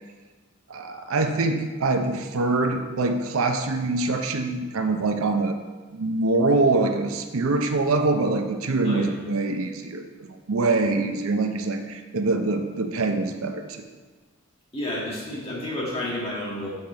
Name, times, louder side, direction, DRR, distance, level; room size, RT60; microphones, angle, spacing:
voice 1, 0.7-5.6 5.9-13.9, right 3 dB, 80° right, 6 dB, 0.6 m, -24 dB
voice 2, 14.7-16.7, left 1 dB, 30° left, -5 dB, 1.8 m, -30 dB
7.4 x 5.7 x 4.3 m, 1.3 s
head